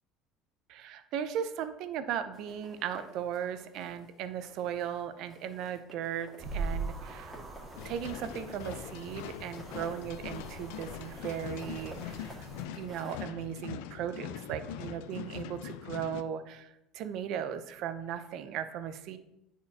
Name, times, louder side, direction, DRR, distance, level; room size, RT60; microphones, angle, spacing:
voice 1, 0.7-7.4 7.8-12.5 12.7-19.2, right 9 dB, 60° right, 10 dB, 0.6 m, -37 dB
sound 1, 2.3-4.1 4.4-5.0 5.3-13.3, equal, 5° left, 1.8 m, -52 dB
sound 2, 6.4-12.7, right 3 dB, 25° right, 1.0 m, -42 dB
sound 3, 7.8-16.2, left 10 dB, 85° left, 0.4 m, -42 dB
9.6 x 4.3 x 2.8 m, 0.85 s
cardioid pair, 130°, 0 cm